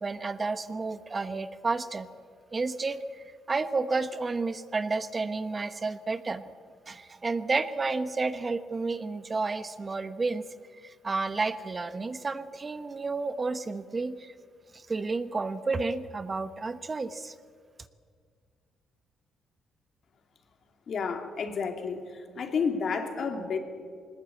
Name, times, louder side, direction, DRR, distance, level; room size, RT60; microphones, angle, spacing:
voice 1, 0.0-2.1 2.5-6.4 6.9-10.5 10.7-14.3 14.7-17.3, right 3 dB, 30° right, 12 dB, 1.0 m, -31 dB
voice 2, 20.9-23.6, left 5 dB, 55° left, 5 dB, 2.8 m, -31 dB
20.5 x 20.0 x 8.4 m, 2.1 s
cardioid pair, 90°, 0 cm